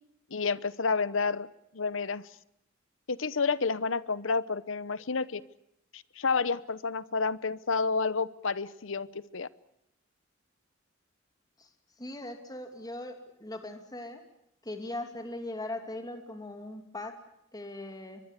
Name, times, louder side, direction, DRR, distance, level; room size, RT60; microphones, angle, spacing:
voice 1, 0.3-1.5 1.7-2.3 3.1-5.4 5.9-9.5, left 4 dB, 75° left, 17 dB, 0.9 m, -30 dB
voice 2, 12.0-14.2 14.6-17.1 17.5-18.2, left 1 dB, 20° left, 6 dB, 2.6 m, -39 dB
24.0 x 22.5 x 8.3 m, 0.77 s
head